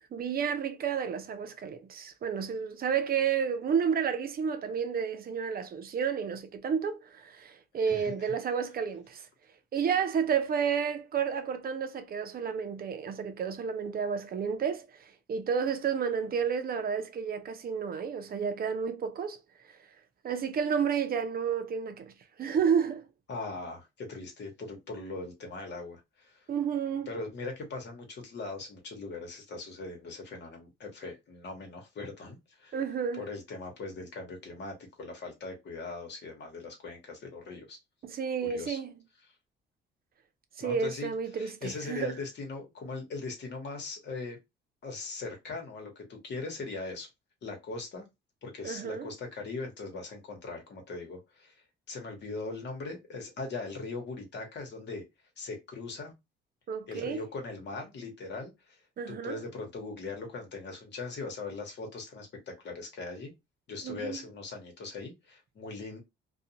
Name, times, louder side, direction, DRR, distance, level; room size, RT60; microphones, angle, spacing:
voice 1, 0.0-9.3 9.7-19.8 20.2-23.0 26.5-27.1 32.7-33.2 38.0-38.9 40.6-42.2 48.6-49.1 56.7-57.2 59.0-59.4 63.8-64.2, right 7 dB, 50° right, 0.5 m, -31 dB
voice 2, 7.9-8.3 23.3-26.5 27.1-32.7 33.2-37.8 38.4-38.8 40.6-44.4 44.8-47.1 47.4-48.0 48.4-55.0 55.4-56.1 56.9-58.8 59.1-63.3 63.7-66.0, left 3 dB, 60° left, 1.1 m, -40 dB
2.5 x 2.3 x 2.8 m
cardioid pair, 90°, 20 cm